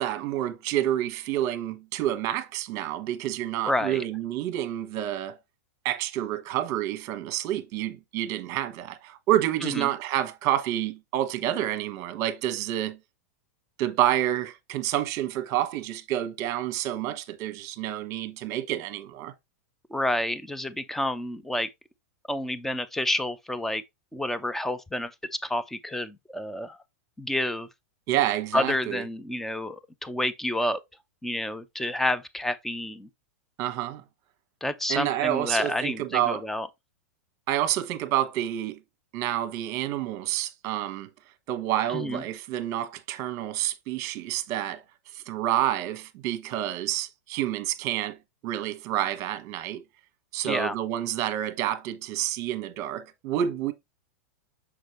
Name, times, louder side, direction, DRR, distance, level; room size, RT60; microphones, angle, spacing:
voice 1, 0.0-5.4 5.8-13.0 13.8-19.3 28.1-29.0 33.6-34.0 34.9-36.4 37.5-38.8 39.1-41.1 41.5-44.8 45.1-48.2 48.4-49.8 50.3-53.7, right 12 dB, 45° right, 1.2 m, -28 dB
voice 2, 3.6-4.0 9.6-9.9 19.9-21.7 22.3-23.8 24.1-26.8 27.2-27.7 28.5-30.8 31.2-33.1 34.6-36.7 41.9-42.2 50.4-50.7, left 1 dB, 5° left, 0.6 m, -29 dB
6.5 x 5.0 x 3.1 m
hypercardioid pair, 125°, 8 cm